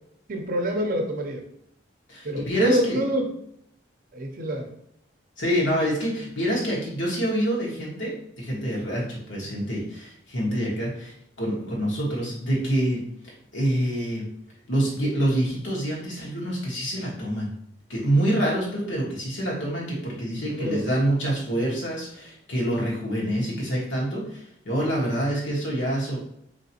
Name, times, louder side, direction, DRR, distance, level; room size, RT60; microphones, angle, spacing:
voice 1, 0.3-1.4 2.2-3.3 4.1-4.7 20.3-20.9, equal, 45° right, 3 dB, 0.6 m, -26 dB
voice 2, 2.1-3.0 5.4-13.0 13.5-14.3 14.7-17.5 17.9-26.2, right 1 dB, 80° left, -4 dB, 1.4 m, -26 dB
3.9 x 3.0 x 2.8 m, 0.73 s
head